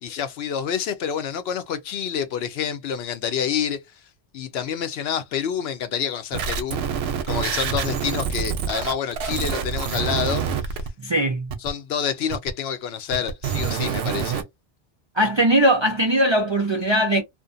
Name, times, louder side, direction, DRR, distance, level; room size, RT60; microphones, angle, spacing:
voice 1, 0.0-3.8 4.3-6.8 7.3-10.8 11.6-14.4, left 8 dB, 80° left, 0.8 m, -28 dB
sound 1, 6.3-10.9 11.5-11.7 12.3-12.5 13.1-14.4, right 7 dB, 90° right, 0.8 m, -26 dB
voice 2, 11.0-11.5 15.2-17.2, right 1 dB, 50° right, 0.3 m, -20 dB
2.6 x 2.2 x 2.5 m
omnidirectional pair, 1.0 m